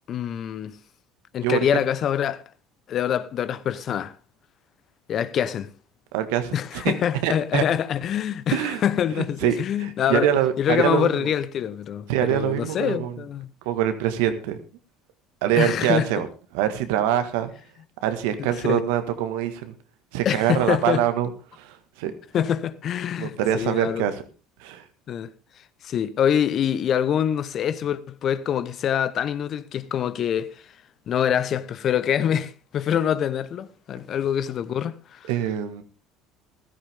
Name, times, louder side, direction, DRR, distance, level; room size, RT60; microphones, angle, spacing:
voice 1, 0.1-0.8 1.3-2.4 2.9-4.1 5.1-5.7 6.5-10.3 10.6-13.5 15.6-16.1 18.6-18.8 20.2-21.0 22.3-24.1 25.1-25.3 25.8-30.5 31.1-35.3, left 9 dB, 50° left, 0.9 m, -25 dB
voice 2, 6.1-6.9 7.2-7.6 8.5-8.8 9.2-11.3 12.1-13.1 13.6-14.6 15.4-16.3 16.5-17.5 18.0-19.7 20.1-22.1 23.2-24.2 24.6-24.8 35.3-35.8, right 11 dB, 80° right, 1.6 m, -24 dB
15.0 x 13.0 x 3.6 m
supercardioid pair, 85°, 0 cm